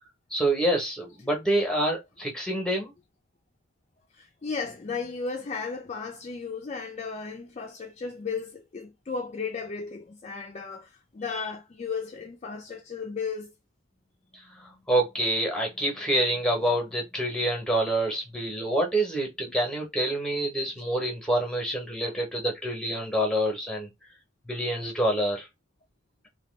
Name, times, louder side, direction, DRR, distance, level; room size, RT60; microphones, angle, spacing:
voice 1, 0.3-2.9 11.4-11.5 14.3-23.9 24.5-25.5, right 1 dB, 5° left, 0.9 m, -27 dB
voice 2, 4.1-13.5, left 5 dB, 35° left, 0.4 m, -35 dB
2.8 x 2.3 x 3.2 m
head